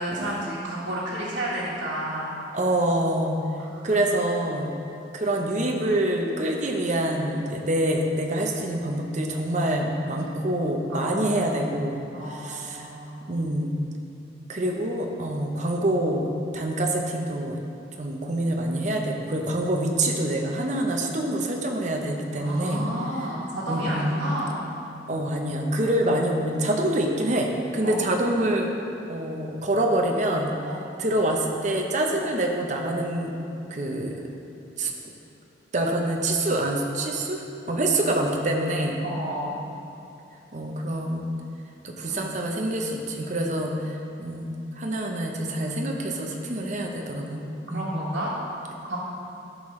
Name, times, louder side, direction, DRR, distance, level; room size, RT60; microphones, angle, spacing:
voice 1, 0.0-2.3 3.6-4.0 10.1-10.3 10.9-11.1 12.1-13.2 22.3-24.6 27.8-28.1 30.6-30.8 39.0-39.6 42.1-42.2 47.7-48.3 48.8-49.0, right 1 dB, 85° right, -10 dB, 1.5 m, -31 dB
voice 2, 2.5-3.4 3.8-4.7 5.1-12.9 13.3-13.8 14.5-17.6 18.0-22.9 23.7-24.1 25.1-28.7 29.1-30.5 31.0-33.3 33.7-34.1 34.8-34.9 35.7-39.0 40.5-41.2 41.8-47.9, right 1 dB, 40° right, 1 dB, 0.8 m, -26 dB
11.0 x 6.4 x 3.2 m, 2.8 s
head